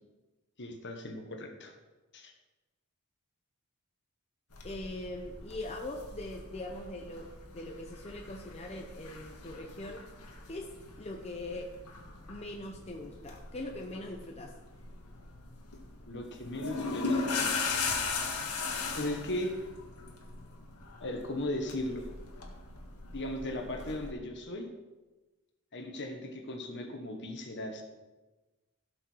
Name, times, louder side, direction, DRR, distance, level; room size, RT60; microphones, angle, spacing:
voice 1, 0.6-1.7 2.1-2.3 16.1-17.5 19.0-19.6 21.0-22.1 23.1-24.7 25.7-27.8, left 1 dB, 50° left, 4 dB, 1.6 m, -37 dB
sound 1, 4.5-24.1, left 4 dB, 90° left, 1.8 m, -39 dB
voice 2, 4.6-7.3 7.5-10.0 10.5-10.7 11.0-11.7 12.3-14.5, left 1 dB, 30° left, 1 dB, 0.9 m, -41 dB
16.5 x 6.4 x 4.7 m, 1.2 s
head